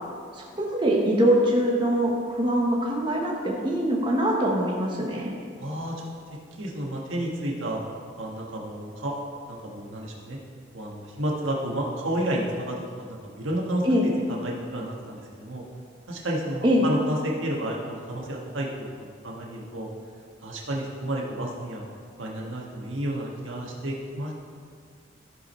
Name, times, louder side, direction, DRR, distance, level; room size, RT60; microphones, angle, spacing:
voice 1, 0.3-5.3 13.8-14.1 16.6-16.9, equal, 25° right, -2 dB, 1.1 m, -23 dB
voice 2, 5.6-6.1 6.6-7.8 8.2-9.1 9.5-10.4 10.7-13.8 14.3-15.6 16.1-18.7 19.0-19.9 20.4-21.8 22.2-24.3, right 1 dB, 85° right, -2 dB, 1.6 m, -31 dB
14.5 x 5.0 x 4.4 m, 2.1 s
head